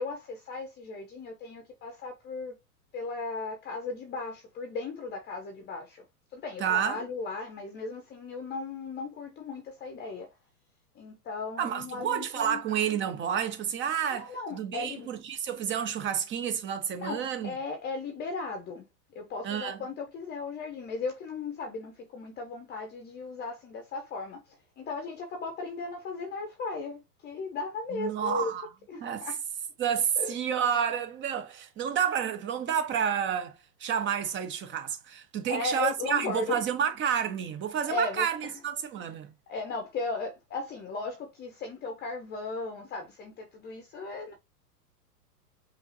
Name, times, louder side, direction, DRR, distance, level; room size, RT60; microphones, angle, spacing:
voice 1, 0.0-2.6 2.9-6.0 6.3-10.3 10.9-12.6 14.1-15.1 17.0-18.9 19.1-28.5 28.9-29.4 30.2-30.3 35.5-36.6 37.9-38.5 39.5-44.3, left 3 dB, 20° left, 0.8 m, -36 dB
voice 2, 6.6-7.0 11.6-17.6 19.4-19.8 27.9-28.7 29.0-29.3 29.8-33.5 33.8-39.3, right 8 dB, 25° right, 0.9 m, -30 dB
5.5 x 2.7 x 2.8 m
hypercardioid pair, 110°, 47 cm